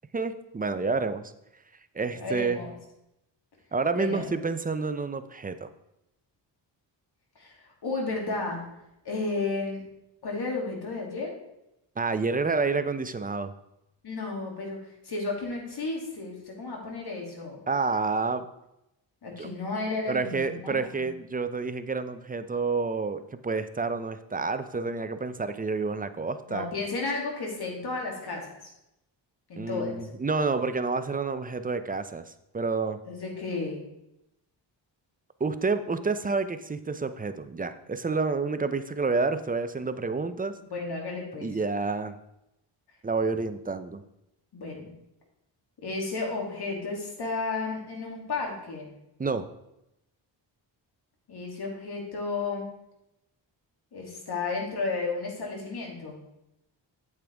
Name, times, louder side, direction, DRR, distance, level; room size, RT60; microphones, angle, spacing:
voice 1, 0.1-1.3 1.9-2.6 3.7-5.7 12.0-13.5 17.7-18.5 19.4-19.5 20.1-26.7 29.6-32.3 32.5-33.0 35.4-40.5 41.4-42.1 43.0-44.0 49.2-49.5, right 4 dB, 20° right, 11 dB, 0.6 m, -29 dB
voice 2, 2.1-2.7 3.9-4.3 7.4-8.6 9.0-9.8 10.2-11.3 14.0-14.8 15.0-17.6 19.2-21.1 26.5-28.5 29.5-30.0 33.0-33.8 40.7-41.5 44.5-44.9 45.8-48.9 51.3-52.7 53.9-56.2, left 3 dB, 60° left, 0 dB, 2.8 m, -33 dB
8.6 x 7.9 x 3.5 m, 0.85 s
cardioid pair, 85°, 45 cm